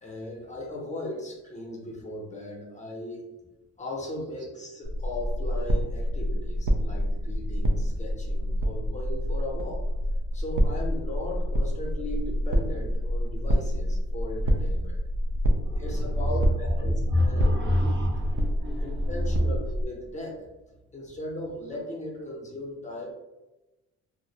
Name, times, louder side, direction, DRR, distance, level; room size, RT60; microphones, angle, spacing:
voice 1, 0.0-3.3 3.8-9.8 10.3-15.0 15.8-17.4 17.8-17.9 18.8-20.4 20.9-23.1, left 1 dB, 25° left, -2 dB, 0.6 m, -37 dB
sound 1, 4.8-19.9, equal, 80° right, 0.5 m, -27 dB
voice 2, 15.5-19.5, equal, 40° right, -1 dB, 0.6 m, -28 dB
2.4 x 2.0 x 2.8 m, 1.0 s
cardioid pair, 90°, 30 cm